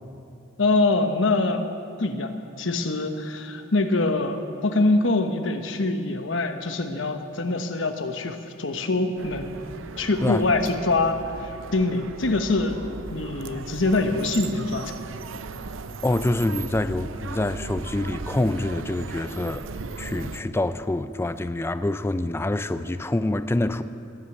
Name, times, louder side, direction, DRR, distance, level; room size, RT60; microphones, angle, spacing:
voice 1, 0.6-1.6 2.0-2.3 2.6-9.6 10.0-12.8 13.1-14.9, left 2 dB, 70° left, 7 dB, 1.1 m, -24 dB
sound 1, 9.2-20.4, right 4 dB, 85° right, 0.6 m, -37 dB
voice 2, 16.0-19.7 20.0-23.8, left 2 dB, 15° left, 12 dB, 0.3 m, -26 dB
19.0 x 6.4 x 9.5 m, 2.6 s
head